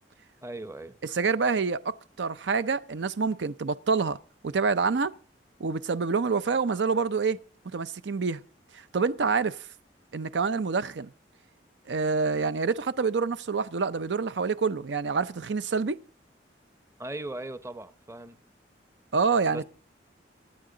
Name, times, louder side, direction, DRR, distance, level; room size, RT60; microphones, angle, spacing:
voice 1, 0.4-1.0 17.0-18.4 19.5-19.6, right 2 dB, 15° right, 0.7 m, -38 dB
voice 2, 1.1-4.2 4.4-5.1 5.6-7.4 7.7-8.4 8.9-9.6 10.1-11.1 11.9-16.0 19.1-19.6, right 4 dB, 80° right, 0.6 m, -27 dB
25.5 x 9.4 x 3.8 m
head